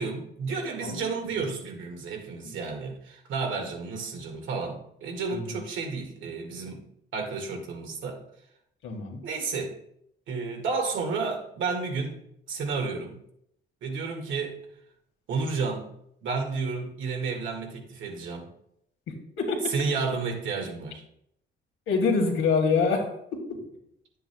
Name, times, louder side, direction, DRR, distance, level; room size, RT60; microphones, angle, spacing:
voice 1, 0.0-6.8 7.1-8.2 9.2-9.8 10.3-12.2 12.5-13.2 13.8-14.6 15.3-15.9 16.2-18.5 19.7-21.0, right 4 dB, 75° right, 2 dB, 1.9 m, -31 dB
voice 2, 8.8-9.2 19.4-19.7 21.9-23.6, left 4 dB, 90° left, 2 dB, 1.8 m, -26 dB
10.5 x 7.7 x 2.3 m, 0.73 s
cardioid pair, 90°, 20 cm